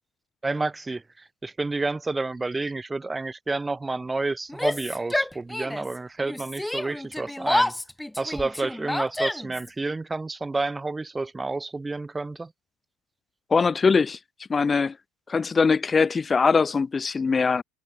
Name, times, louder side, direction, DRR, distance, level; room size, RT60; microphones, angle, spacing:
voice 1, 0.4-7.7 8.2-12.5, right 3 dB, 15° right, 1.2 m, -30 dB
Yell, 4.5-5.9 6.2-9.7, left 1 dB, 5° left, 2.1 m, -28 dB
voice 2, 13.5-14.2 14.5-15.0 15.3-17.6, left 5 dB, 25° left, 0.7 m, -21 dB
figure-of-eight pair, 65°, 0 cm